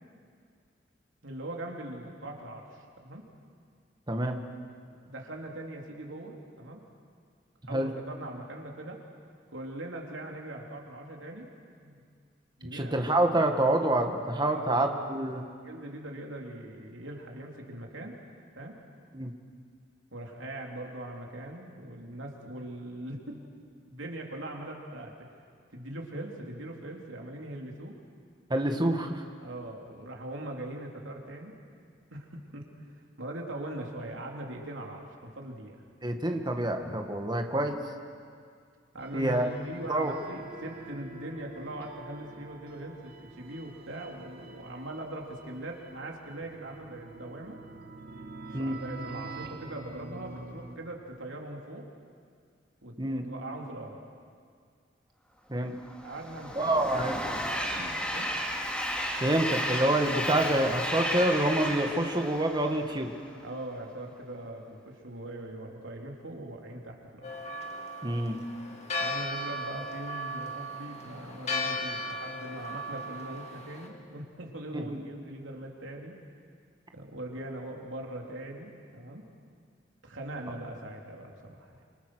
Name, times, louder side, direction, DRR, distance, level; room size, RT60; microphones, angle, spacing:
voice 1, 1.2-3.3 5.0-6.8 7.7-9.0 9.5-11.5 11.8-12.0 12.6-13.1 14.4-18.1 18.6-18.8 20.1-23.4 23.9-25.3 25.7-28.0 29.4-31.6 32.1-32.7 33.2-35.8 38.9-47.6 48.6-51.9 52.8-54.0 56.0-57.0 57.3-57.4 57.7-58.3 63.4-67.3 69.0-76.2 76.9-79.3 80.0-81.8, right 1 dB, 85° right, 0 dB, 3.6 m, -41 dB
voice 2, 4.1-4.4 7.7-7.9 12.7-15.5 19.1-19.3 28.5-29.2 36.0-37.8 39.1-39.5 39.9-40.1 48.5-48.8 53.0-53.3 55.5-55.7 56.6-57.1 59.2-63.1 68.0-68.4 74.7-75.0, right 1 dB, 25° right, 4 dB, 1.8 m, -27 dB
sound 1, 39.0-50.8, right 3 dB, 55° right, 2.1 m, -46 dB
Train, 55.8-63.2, equal, 5° left, 3.0 m, -33 dB
Church bell, 67.2-73.9, left 1 dB, 35° left, 2.5 m, -36 dB
27.5 x 26.0 x 6.4 m, 2.2 s
head